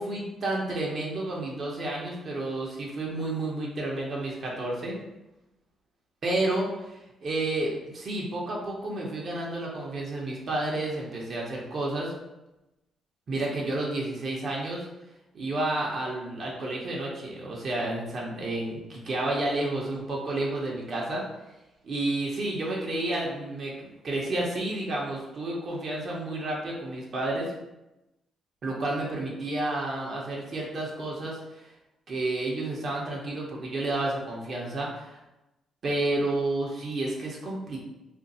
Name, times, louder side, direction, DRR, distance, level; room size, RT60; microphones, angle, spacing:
voice 1, 0.0-5.0 6.2-12.1 13.3-14.9 15.3-21.2 21.8-23.7 24.0-27.5 28.6-31.6 32.1-35.2 35.8-37.8, right 2 dB, 50° right, -3 dB, 0.8 m, -30 dB
2.5 x 2.2 x 4.0 m, 0.97 s
cardioid pair, 90°, 0 cm